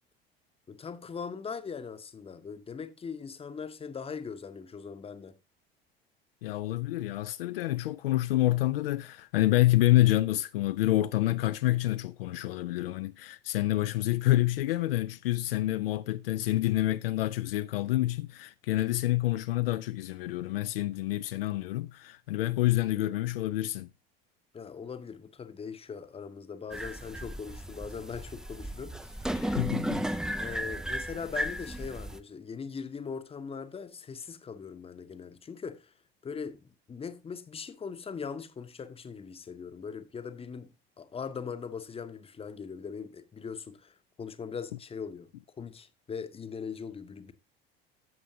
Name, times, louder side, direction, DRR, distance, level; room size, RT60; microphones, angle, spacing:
voice 1, 0.7-5.3 24.5-29.5 30.4-35.9 36.2-47.3, left 6 dB, 20° left, 0.8 m, -40 dB
voice 2, 6.4-23.9 29.3-30.1, left 16 dB, 70° left, 0.4 m, -28 dB
sound 1, 26.7-32.2, right 1 dB, ahead, 0.4 m, -35 dB
13.5 x 6.8 x 2.7 m
figure-of-eight pair, 65°, 30 cm